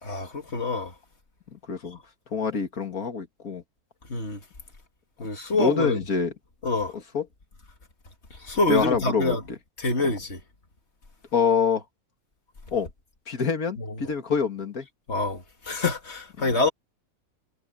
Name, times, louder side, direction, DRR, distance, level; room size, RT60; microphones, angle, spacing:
voice 1, 0.0-0.9 1.9-2.0 4.1-4.4 5.2-6.0 6.6-6.9 8.4-9.4 9.8-10.4 13.8-14.1 15.1-16.7, left 3 dB, 50° left, 2.4 m, -26 dB
voice 2, 1.5-2.0 2.3-3.6 5.5-6.3 6.9-7.3 8.7-9.4 10.0-10.1 11.3-11.8 12.7-12.9 13.3-14.9 16.4-16.5, left 5 dB, 85° left, 2.6 m, -26 dB
omnidirectional pair, 1.5 m